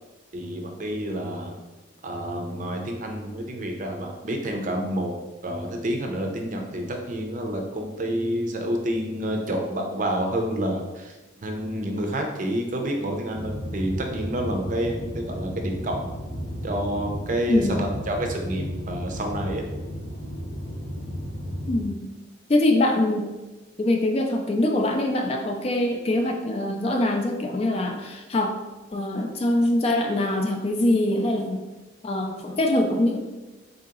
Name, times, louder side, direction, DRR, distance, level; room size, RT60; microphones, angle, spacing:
voice 1, 0.3-1.6 2.0-5.1 5.4-11.2 11.4-16.1 16.6-19.6, right 1 dB, 40° right, 2 dB, 0.5 m, -29 dB
sound 1, 13.3-21.8, equal, 55° left, 0.8 m, -33 dB
voice 2, 17.5-17.8 21.7-22.1 22.5-23.3 23.8-28.6 28.9-31.7 32.0-33.2, left 1 dB, 30° left, 3 dB, 0.3 m, -23 dB
3.9 x 2.8 x 3.7 m, 1.1 s
head